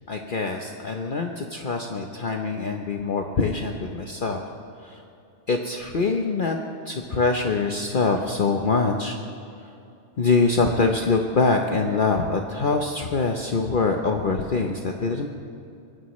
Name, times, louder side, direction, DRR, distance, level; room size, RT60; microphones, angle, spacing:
voice 1, 0.1-4.4 4.8-5.0 5.5-6.6 6.9-9.2 9.6-9.7 10.2-15.3, left 4 dB, 45° left, 2 dB, 1.0 m, -24 dB
25.5 x 18.0 x 3.2 m, 2.7 s
omnidirectional pair, 1.2 m